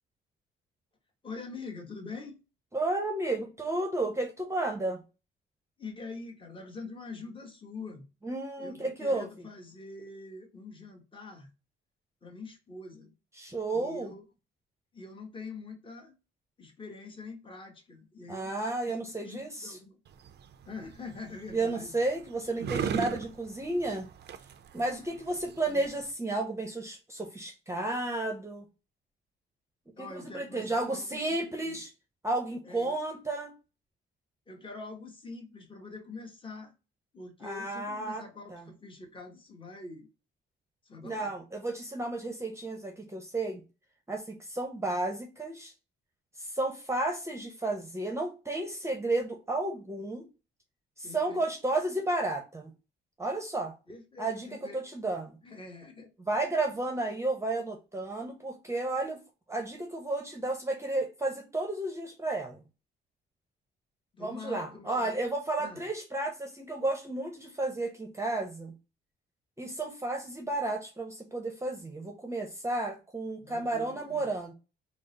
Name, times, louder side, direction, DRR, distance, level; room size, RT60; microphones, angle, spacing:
voice 1, 1.2-2.4 5.8-8.1 8.6-11.5 12.2-13.1 13.7-14.2 14.9-16.1 16.6-18.5 18.9-20.0 20.6-21.9 25.7-25.9 30.0-31.8 32.6-33.0 34.5-36.7 37.1-40.1 40.8-41.3 51.0-51.4 53.9-54.8 55.4-56.1 64.1-65.1 65.6-65.8 73.4-74.3, left 3 dB, 25° left, 1.1 m, -44 dB
voice 2, 2.7-5.0 8.2-9.5 13.4-14.1 18.3-19.7 21.5-24.1 24.7-28.7 30.0-31.9 32.2-33.5 37.4-38.2 38.5-38.7 41.0-43.6 44.1-45.7 46.4-50.3 51.0-52.7 53.2-53.7 54.2-55.4 56.2-59.2 59.5-62.6 64.2-68.7 69.6-74.5, right 2 dB, 15° right, 0.8 m, -32 dB
sound 1, 20.0-26.1, right 7 dB, 55° right, 0.5 m, -38 dB
3.7 x 2.0 x 3.8 m
cardioid pair, 90°, 20 cm